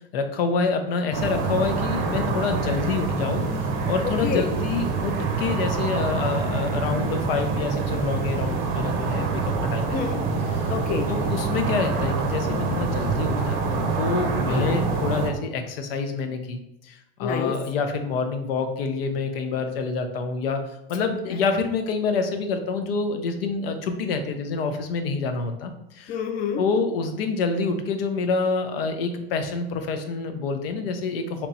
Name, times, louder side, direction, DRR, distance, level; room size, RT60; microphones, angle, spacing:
voice 1, 0.1-9.4 9.7-10.0 11.1-20.6 20.9-26.2 26.6-31.5, left 4 dB, 80° left, 7 dB, 0.6 m, -27 dB
sound 1, 1.1-15.3, right 4 dB, 45° right, 0.6 m, -26 dB
voice 2, 4.0-4.5 9.9-10.3 10.7-11.1 14.5-14.8 17.2-17.6 21.0-21.4 26.1-26.6, left 6 dB, 30° left, 6 dB, 0.4 m, -28 dB
2.9 x 2.2 x 4.0 m, 0.83 s
hypercardioid pair, 100°, 29 cm